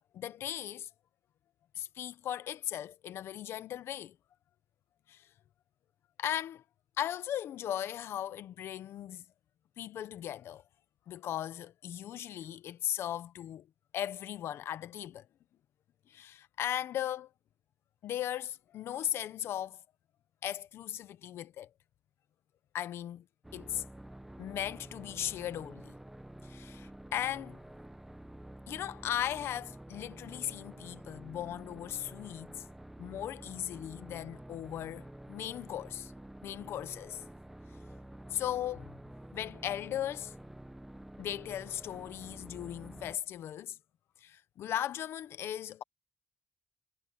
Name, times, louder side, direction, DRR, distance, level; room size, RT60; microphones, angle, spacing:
voice 1, 0.1-0.9 1.7-4.1 5.1-5.3 6.2-6.6 7.0-9.2 9.8-10.6 11.1-13.7 13.9-15.3 16.1-17.3 18.0-19.8 20.4-21.7 22.7-23.2 23.5-23.8 24.4-25.9 26.4-27.6 28.7-32.6 33.0-36.1 36.4-37.2 38.3-38.9 39.3-40.3 41.2-43.8 44.2-45.8, left 11 dB, 85° left, 0.8 m, -37 dB
sound 1, 23.4-43.2, right 1 dB, 5° right, 0.9 m, -49 dB
wide cardioid pair, 160°, 4 cm